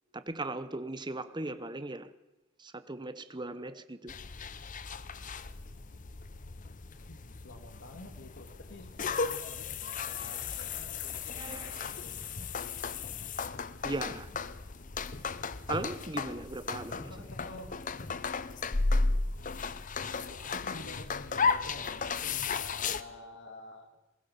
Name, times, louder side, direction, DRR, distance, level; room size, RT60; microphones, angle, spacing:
voice 1, 0.1-2.1 2.6-4.1 10.1-10.2 11.3-11.9 13.8-14.3 15.7-17.3, right 2 dB, 20° right, 1.0 m, -38 dB
sound 1, 4.1-23.0, left 4 dB, 40° left, 0.8 m, -35 dB
voice 2, 6.9-12.1 17.1-17.9 19.4-23.9, left 2 dB, 60° left, 2.3 m, -49 dB
22.0 x 17.0 x 7.1 m
head